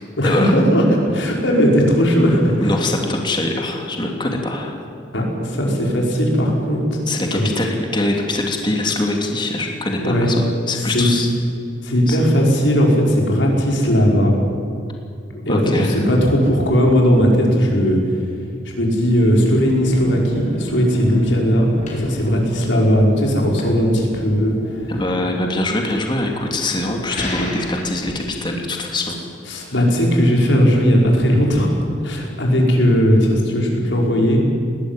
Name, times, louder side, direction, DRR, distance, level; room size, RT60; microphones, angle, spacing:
voice 1, 0.2-2.7 5.1-7.1 7.3-7.5 10.0-10.3 10.8-11.1 11.8-14.3 15.3-18.0 18.6-24.9 29.5-31.7 32.0-34.4, equal, 75° left, -1 dB, 5.4 m, -17 dB
voice 2, 2.6-4.7 7.1-11.3 12.1-12.2 15.5-15.9 24.9-29.2, left 2 dB, 25° left, 2 dB, 2.7 m, -23 dB
sound 1, 19.0-28.3, left 1 dB, 40° left, 4.6 m, -33 dB
20.5 x 18.5 x 9.1 m, 2.4 s
head